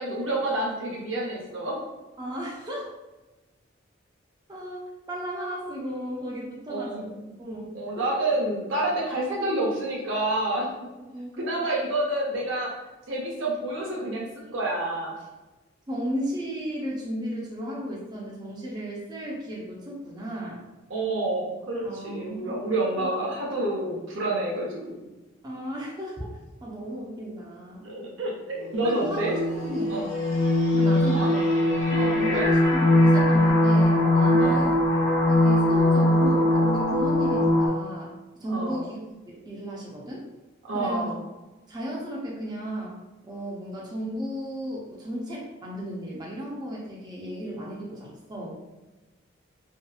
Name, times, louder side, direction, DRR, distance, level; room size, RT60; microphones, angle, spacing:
voice 1, 0.0-1.8 6.7-7.3 7.7-10.7 11.4-12.7 13.1-15.2 20.9-25.0 27.8-29.3 29.9-30.1 31.1-31.3 31.9-32.5 34.4-34.7 38.5-38.8 40.6-41.2, right 1 dB, 70° right, -3 dB, 0.7 m, -28 dB
voice 2, 2.2-2.8 4.5-7.1 7.4-8.1 11.1-11.5 15.9-20.6 21.8-23.1 25.4-26.3 26.6-27.8 28.8-30.0 30.7-31.5 31.9-34.8 35.3-38.1 38.4-39.0 39.3-40.3 40.7-41.1 41.7-43.0 43.3-48.6, equal, 20° right, -4 dB, 0.4 m, -34 dB
sound 1, 28.7-37.7, left 1 dB, 90° left, 0.9 m, -21 dB
2.7 x 2.3 x 2.3 m, 1.1 s
head